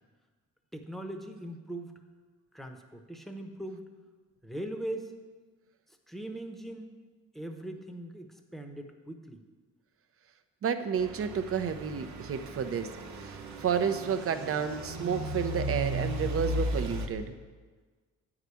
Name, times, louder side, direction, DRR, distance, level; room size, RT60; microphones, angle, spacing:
voice 1, 0.7-1.9 2.5-3.8 4.4-5.1 6.1-6.9 7.3-9.4, right 1 dB, ahead, 5 dB, 1.0 m, -40 dB
voice 2, 10.6-12.9 13.2-17.3, right 7 dB, 50° right, 8 dB, 0.7 m, -31 dB
Truck / Idling, 11.0-17.1, right 1 dB, 70° right, 1.0 m, -35 dB
9.2 x 4.9 x 7.0 m, 1.4 s
cardioid pair, 90°, 30 cm